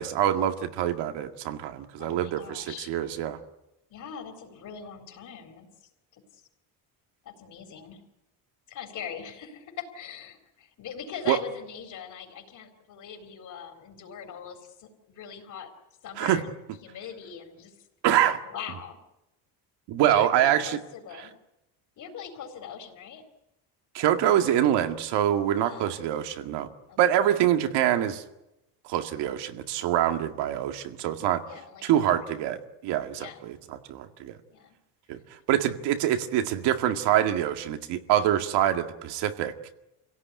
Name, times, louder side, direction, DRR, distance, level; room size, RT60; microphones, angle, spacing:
voice 1, 0.0-3.4 11.3-11.4 16.2-16.4 18.0-18.4 19.9-20.8 23.9-26.7 27.0-28.2 28.9-31.4 31.8-33.6 33.9-34.3 35.1-35.2 35.5-39.5, right 11 dB, 90° right, 7 dB, 2.2 m, -25 dB
voice 2, 2.0-2.9 3.9-6.4 7.2-8.0 8.7-15.7 16.0-17.7 18.4-19.0 20.0-21.3 22.0-23.2 25.6-26.3 26.9-27.2 31.4-32.2 33.2-33.4 34.5-34.7, left 7 dB, 50° left, 5 dB, 4.2 m, -42 dB
27.5 x 17.0 x 9.6 m, 0.91 s
cardioid pair, 170°, 40 cm